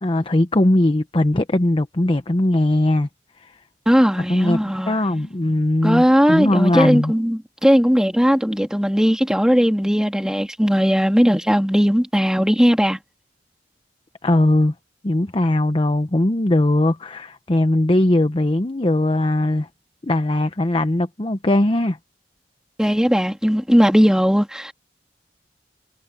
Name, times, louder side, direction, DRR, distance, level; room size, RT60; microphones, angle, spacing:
voice 1, 0.0-3.1 3.4-3.5 4.3-7.1 14.2-14.7 15.0-19.7 20.0-22.0, left 1 dB, 30° left, 0.8 m, -19 dB
voice 2, 3.9-5.0 5.8-13.0 22.8-24.7, equal, 5° right, 2.6 m, -18 dB
head